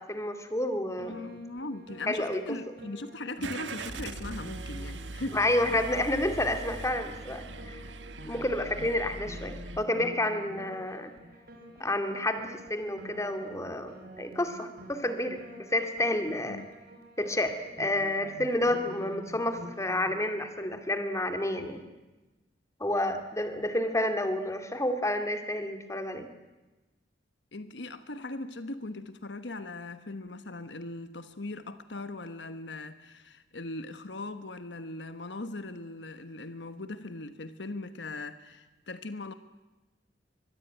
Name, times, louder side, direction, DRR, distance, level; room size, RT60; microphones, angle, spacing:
voice 1, 0.0-1.2 2.1-2.6 5.3-7.8 8.3-11.1 11.8-15.4 15.7-16.6 17.2-21.8 22.8-26.3, left 1 dB, 15° left, 2.3 m, -30 dB
Piano, 1.0-20.2, equal, 60° right, 4.8 m, -48 dB
voice 2, 1.1-5.4 16.5-16.7 23.1-23.3 27.5-39.3, left 2 dB, 70° left, 1.2 m, -39 dB
Car / Engine starting, 3.4-9.8, right 2 dB, 90° right, 1.6 m, -41 dB
24.0 x 21.5 x 9.2 m
head